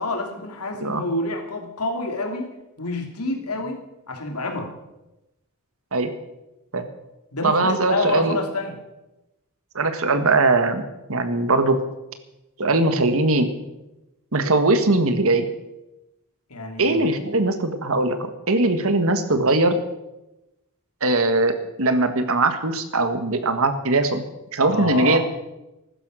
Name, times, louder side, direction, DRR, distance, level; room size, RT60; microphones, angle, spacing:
voice 1, 0.0-2.5 2.8-3.8 4.1-4.7 7.3-8.8 16.5-17.0 24.7-25.2, left 2 dB, 90° left, 3 dB, 2.8 m, -27 dB
voice 2, 7.4-8.4 9.7-10.8 11.1-11.8 12.6-13.5 14.3-15.5 16.8-19.8 21.0-24.2 24.5-25.2, right 2 dB, 65° right, 9 dB, 1.6 m, -20 dB
15.5 x 12.0 x 6.3 m, 0.96 s
head